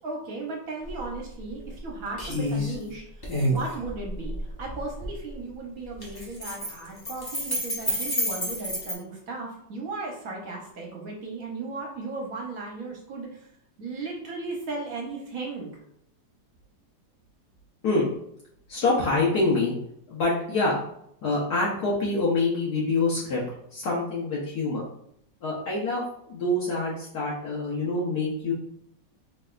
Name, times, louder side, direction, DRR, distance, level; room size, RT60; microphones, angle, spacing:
voice 1, 0.0-13.5 13.8-15.7, right 3 dB, 60° right, -1 dB, 1.1 m, -36 dB
sound 1, 0.8-1.0 1.4-1.9 2.2-2.7 3.2-5.1 5.9-8.9, equal, 30° left, 0.4 m, -29 dB
voice 2, 18.7-19.7 20.1-20.8 21.2-23.4 23.7-24.9 25.4-26.0 26.3-28.5, left 2 dB, 65° left, -6 dB, 1.4 m, -25 dB
4.0 x 3.2 x 2.4 m, 0.72 s
omnidirectional pair, 2.0 m